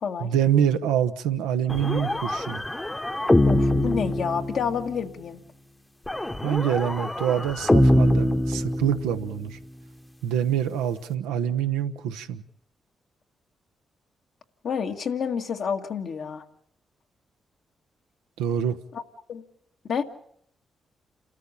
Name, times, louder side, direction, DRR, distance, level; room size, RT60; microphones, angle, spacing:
voice 1, 0.2-2.6 6.4-9.6 10.2-12.4 18.4-18.8, right 9 dB, 90° right, 7 dB, 0.9 m, -25 dB
sound 1, 1.7-5.0 6.1-9.3, left 1 dB, 15° left, 1.1 m, -23 dB
voice 2, 3.5-5.4 14.6-16.4 18.9-19.0 19.3-19.4 19.9-20.0, left 6 dB, 70° left, 3 dB, 1.8 m, -29 dB
29.0 x 13.5 x 7.2 m, 0.67 s
hypercardioid pair, 45°, 0 cm